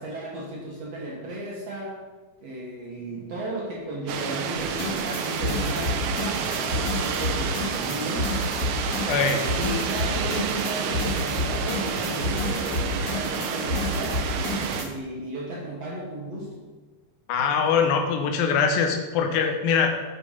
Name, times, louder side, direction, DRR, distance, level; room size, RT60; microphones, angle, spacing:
voice 1, 0.0-2.0 2.4-8.4 9.6-14.2 14.8-16.6, right 1 dB, 60° right, -2 dB, 1.9 m, -35 dB
sound 1, 4.1-14.9, right 7 dB, 85° right, 2.7 m, -29 dB
sound 2, 4.6-14.8, left 2 dB, 65° left, 4.6 m, -30 dB
voice 2, 9.1-9.5 17.3-19.9, left 6 dB, 80° left, 5 dB, 2.6 m, -22 dB
9.8 x 5.2 x 5.5 m, 1.3 s
omnidirectional pair, 4.3 m